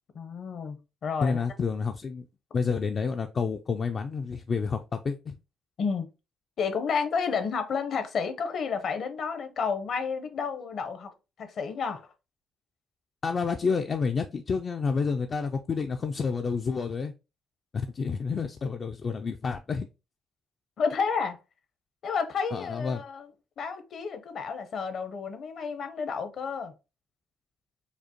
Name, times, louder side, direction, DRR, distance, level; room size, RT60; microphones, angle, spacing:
voice 1, 0.1-1.4 5.8-6.1 6.6-11.1 11.4-12.1 20.8-21.4 22.0-23.3 23.6-26.7, left 5 dB, 55° left, 0.7 m, -31 dB
voice 2, 1.2-2.3 2.5-5.3 13.2-17.1 17.7-19.9 22.5-23.0, left 5 dB, 40° left, 0.3 m, -29 dB
5.0 x 2.1 x 2.8 m
cardioid pair, 105°, 0 cm